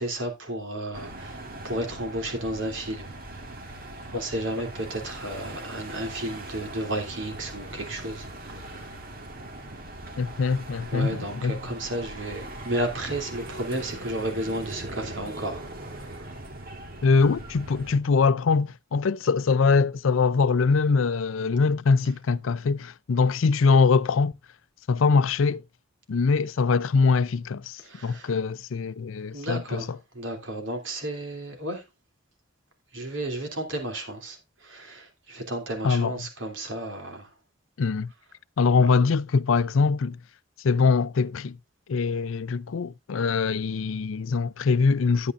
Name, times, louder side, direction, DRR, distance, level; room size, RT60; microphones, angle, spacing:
voice 1, 0.0-3.2 3.7-3.8 4.1-9.0 10.9-16.3 27.8-28.3 29.3-31.8 32.9-37.3 38.8-39.0, right 1 dB, 70° right, 3.1 m, -33 dB
sound 1, 0.9-18.0, right 1 dB, 45° right, 1.8 m, -40 dB
voice 2, 10.2-11.5 17.0-24.3 24.9-25.6 26.1-29.8 35.8-36.1 37.8-38.1 38.6-40.2 40.6-41.6 41.9-45.3, left 4 dB, 80° left, 0.5 m, -23 dB
11.5 x 9.5 x 2.5 m
head